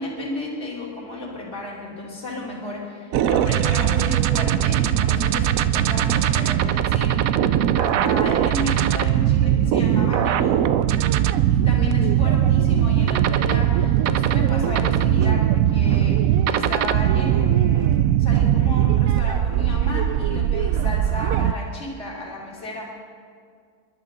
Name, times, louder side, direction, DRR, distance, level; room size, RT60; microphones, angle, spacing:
voice 1, 0.0-7.5 7.8-10.6 11.5-22.9, left 2 dB, 40° left, -4 dB, 3.2 m, -33 dB
sound 1, 3.1-21.5, right 11 dB, 70° right, 0.9 m, -20 dB
29.5 x 11.5 x 3.8 m, 2.2 s
omnidirectional pair, 1.6 m